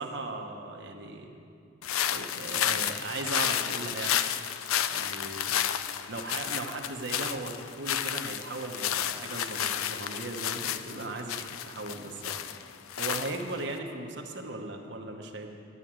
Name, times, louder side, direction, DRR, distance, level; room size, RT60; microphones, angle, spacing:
voice 1, 0.0-1.3 2.1-4.2 4.9-5.5 6.1-12.4 13.0-15.6, right 2 dB, 55° right, 3 dB, 1.0 m, -37 dB
sound 1, 1.8-13.7, left 10 dB, 90° left, 0.5 m, -31 dB
11.0 x 7.4 x 8.8 m, 2.5 s
head